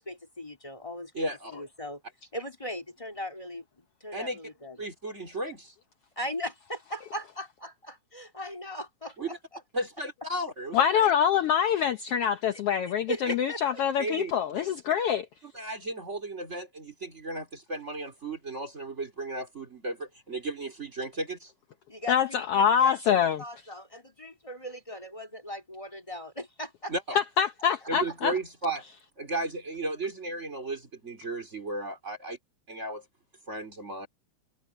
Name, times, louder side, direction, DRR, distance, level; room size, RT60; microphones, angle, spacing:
voice 1, 0.0-1.2 1.5-2.0 2.3-4.8 6.2-9.4 12.5-12.6 13.1-13.8 21.9-27.2, equal, 10° left, 2.8 m, -39 dB
voice 2, 1.1-1.6 4.1-4.4 4.8-5.7 9.2-9.4 9.7-11.1 13.3-13.4 14.0-14.3 14.6-14.7 15.4-21.5 26.9-27.0 27.9-28.8 29.2-32.4 32.7-33.0 33.5-34.1, right 2 dB, 25° right, 3.0 m, -34 dB
voice 3, 10.7-15.2 22.1-23.4 27.1-28.3, left 8 dB, 65° left, 1.6 m, -25 dB
omnidirectional pair, 3.3 m